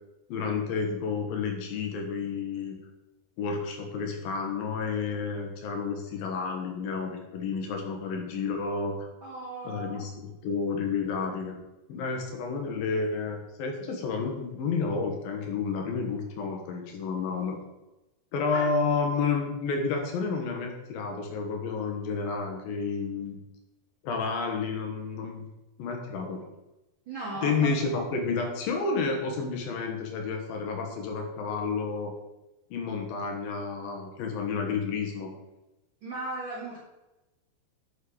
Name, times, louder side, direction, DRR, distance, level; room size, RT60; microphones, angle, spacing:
voice 1, 0.3-2.7 3.4-9.1 9.6-11.5 11.9-17.6 18.3-23.3 24.0-25.5 25.8-26.4 27.4-32.1 32.7-35.3, left 4 dB, 65° left, 2 dB, 2.7 m, -30 dB
voice 2, 9.2-10.1 18.5-18.6 27.0-27.7 36.0-36.8, right 2 dB, 60° right, -6 dB, 1.2 m, -36 dB
8.5 x 6.6 x 4.9 m, 0.98 s
omnidirectional pair, 4.9 m